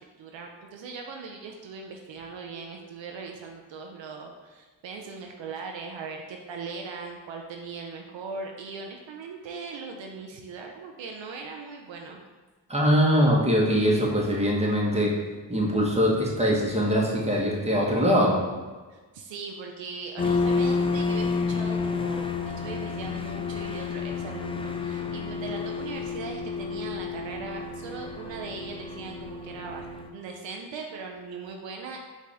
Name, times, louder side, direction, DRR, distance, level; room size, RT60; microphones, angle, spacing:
voice 1, 0.2-12.2 18.9-32.0, right 4 dB, 75° right, 2 dB, 0.6 m, -39 dB
voice 2, 12.7-15.1 15.5-18.4, equal, 15° right, -3 dB, 1.2 m, -22 dB
sound 1, 20.2-30.1, left 4 dB, 15° left, 0.3 m, -30 dB
4.8 x 2.7 x 3.4 m, 1.3 s
cardioid pair, 40°, 45 cm